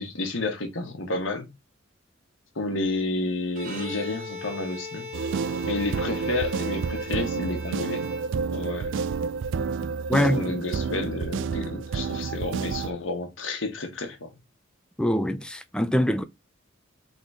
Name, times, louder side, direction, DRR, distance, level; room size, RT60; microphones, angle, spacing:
voice 1, 0.0-1.5 2.5-5.1 5.6-8.0 8.5-8.9 10.1-14.3, left 2 dB, 75° left, 1.3 m, -30 dB
Bowed string instrument, 3.5-8.7, left 3 dB, 45° right, 1.8 m, -39 dB
sound 1, 5.1-12.9, right 5 dB, 65° right, 0.3 m, -29 dB
voice 2, 10.1-10.4 15.0-16.2, left 1 dB, 5° left, 0.5 m, -23 dB
4.1 x 3.7 x 3.3 m
head